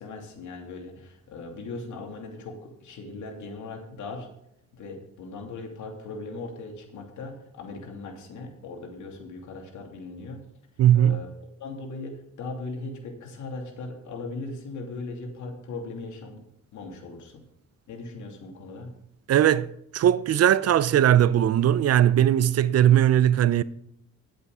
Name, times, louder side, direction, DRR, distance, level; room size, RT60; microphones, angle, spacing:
voice 1, 0.0-4.3 4.7-10.4 10.9-11.3 11.6-16.4 16.7-17.4 17.9-18.9, left 3 dB, 75° left, 2.8 m, -38 dB
voice 2, 10.8-11.2 19.3-23.6, right 11 dB, 55° right, 0.6 m, -19 dB
11.0 x 8.2 x 4.9 m
cardioid pair, 90°, 30 cm